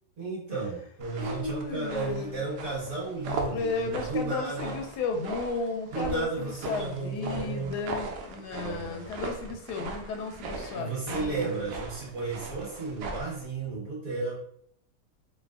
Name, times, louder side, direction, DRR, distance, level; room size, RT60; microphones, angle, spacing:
voice 1, 0.2-4.8 5.9-7.7 8.3-9.1 10.7-14.3, right 3 dB, 60° right, -7 dB, 2.0 m, -34 dB
sound 1, 1.0-13.4, right 3 dB, 85° right, 1.2 m, -39 dB
voice 2, 1.2-2.4 3.5-11.6, left 4 dB, 90° left, 3 dB, 1.2 m, -34 dB
4.2 x 2.2 x 2.3 m, 0.65 s
omnidirectional pair, 1.7 m